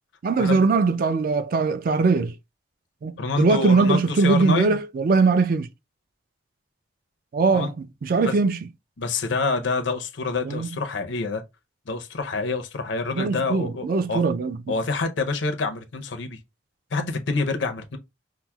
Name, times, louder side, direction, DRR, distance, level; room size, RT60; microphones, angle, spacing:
voice 1, 0.2-2.3 3.0-5.7 7.3-8.6 10.5-10.7 13.1-14.6, right 4 dB, 50° right, 0.3 m, -21 dB
voice 2, 3.2-4.8 7.5-7.7 8.2-8.3 9.0-11.4 11.9-14.2 14.7-16.4 16.9-18.0, left 3 dB, 70° left, 0.6 m, -27 dB
5.7 x 2.0 x 2.3 m
head